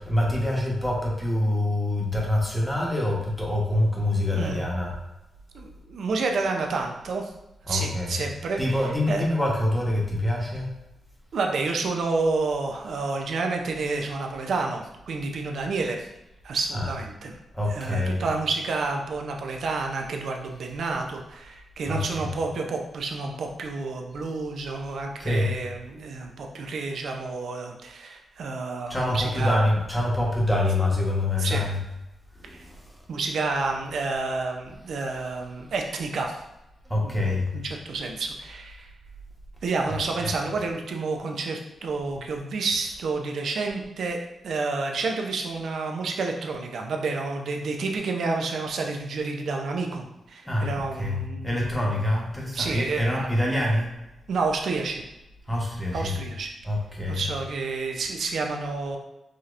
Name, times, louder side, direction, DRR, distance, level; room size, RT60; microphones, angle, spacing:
voice 1, 0.0-4.9 7.6-8.2 8.6-10.7 16.7-16.9 17.5-18.3 21.8-22.3 25.2-25.5 28.9-31.8 32.4-32.8 36.9-37.5 39.9-40.3 50.4-53.9 55.5-56.2 56.6-57.2, left 1 dB, 5° left, -3 dB, 0.9 m, -25 dB
voice 2, 4.3-4.7 5.5-7.3 7.7-8.6 9.1-9.3 11.3-16.1 16.4-17.3 17.7-29.6 31.4-31.7 33.1-36.4 37.0-38.9 39.6-44.2 44.4-51.9 52.5-53.3 54.3-55.0 55.9-56.5 57.1-59.0, right 3 dB, 70° right, 2 dB, 0.5 m, -29 dB
4.9 x 2.8 x 2.4 m, 0.95 s
wide cardioid pair, 120°, 0 cm